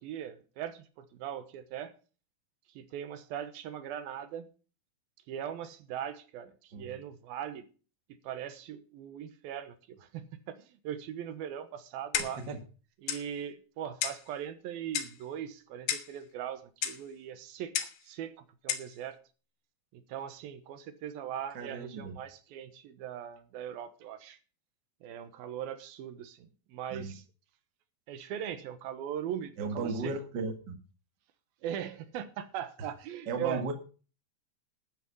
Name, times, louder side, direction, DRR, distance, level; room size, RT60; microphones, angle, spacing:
voice 1, 0.0-1.9 2.7-4.5 5.3-7.7 8.2-12.4 13.0-19.2 19.9-24.4 25.0-27.2 28.1-30.1 31.6-33.8, right 9 dB, 85° right, 3.0 m, -40 dB
Clock, 12.1-12.5 13.1-13.3 14.0-14.3 14.9-15.2 15.9-16.2 16.8-17.0 17.7-18.0 18.7-18.9, left 10 dB, 75° left, 3.0 m, -33 dB
voice 2, 12.2-12.6 21.5-22.1 26.9-27.1 29.6-30.8 33.3-33.8, right 3 dB, 45° right, 1.6 m, -35 dB
12.5 x 9.2 x 5.3 m
omnidirectional pair, 4.2 m